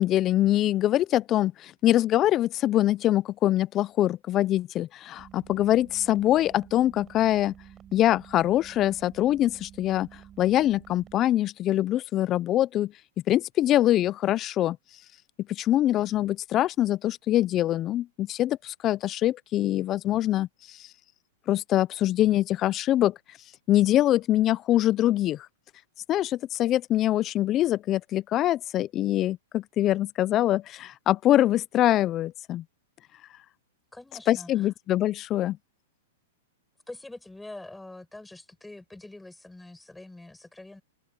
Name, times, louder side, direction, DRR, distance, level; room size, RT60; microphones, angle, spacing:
voice 1, 0.0-7.5 7.9-12.9 13.3-14.8 15.5-20.9 21.5-23.2 23.7-25.5 26.1-32.6 34.3-35.6, left 13 dB, 25° left, 0.4 m, -24 dB
sound 1, 5.2-11.2, right 10 dB, 20° right, 5.7 m, -50 dB
voice 2, 33.9-34.7 36.9-40.8, left 2 dB, 5° left, 7.1 m, -45 dB
hypercardioid pair, 150°, 0 cm